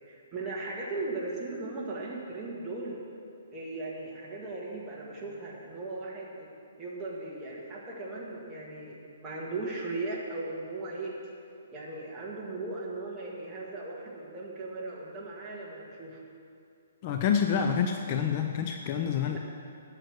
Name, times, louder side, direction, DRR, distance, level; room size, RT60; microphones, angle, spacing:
voice 1, 0.1-3.0 3.5-6.5 6.8-11.1 11.7-16.2 19.3-19.4, right 2 dB, 10° right, -5 dB, 1.7 m, -37 dB
voice 2, 17.0-19.4, left 7 dB, 30° left, 5 dB, 0.5 m, -27 dB
8.9 x 8.2 x 7.8 m, 2.5 s
hypercardioid pair, 170°, 0 cm